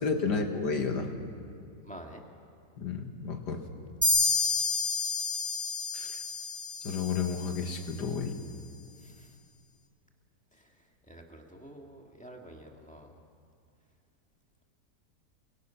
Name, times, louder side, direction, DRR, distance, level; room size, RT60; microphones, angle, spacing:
voice 1, 0.0-1.1 2.8-3.7 5.9-6.2 6.8-8.4, left 5 dB, 80° left, 4 dB, 2.3 m, -31 dB
voice 2, 1.8-2.2 9.0-9.4 10.5-13.1, right 1 dB, 5° left, 0 dB, 1.9 m, -49 dB
sound 1, 4.0-7.6, left 3 dB, 10° right, 2.2 m, -29 dB
29.0 x 22.5 x 5.8 m, 2.3 s
omnidirectional pair, 1.8 m